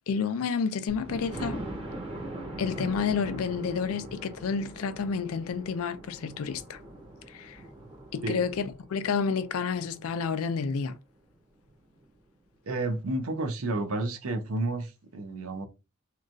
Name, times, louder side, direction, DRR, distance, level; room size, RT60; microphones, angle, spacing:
voice 1, 0.1-1.6 2.6-6.8 7.3-7.6 8.1-11.0, left 6 dB, 80° left, 0.4 m, -30 dB
Thunder, 0.9-10.6 11.2-11.3 11.7-11.8 12.0-12.1, right 1 dB, 25° right, 0.7 m, -42 dB
voice 2, 12.6-15.7, right 2 dB, 80° right, 0.6 m, -31 dB
2.9 x 2.3 x 2.5 m
head